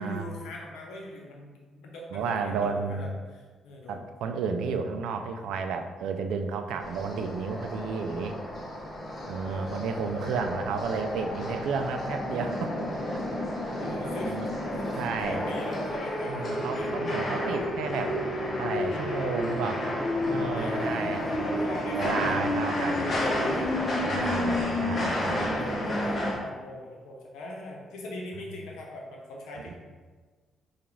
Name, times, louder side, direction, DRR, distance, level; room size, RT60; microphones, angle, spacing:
voice 1, 0.0-4.0 9.5-10.3 13.7-16.9 17.5-17.8 20.6-23.7 24.1-24.3 24.9-29.7, left 1 dB, 90° left, -1 dB, 0.8 m, -40 dB
voice 2, 2.1-3.2 3.9-8.4 9.3-12.7 14.0-14.5 14.9-15.5 16.2-18.2 18.6-19.8 20.3-21.2 22.0-23.1 24.0-25.5 29.7-29.8, right 5 dB, 85° right, 6 dB, 0.3 m, -32 dB
sound 1, 6.8-26.3, left 1 dB, 45° left, 0.9 m, -30 dB
5.0 x 2.4 x 3.0 m, 1.4 s
cardioid pair, 90°, 0 cm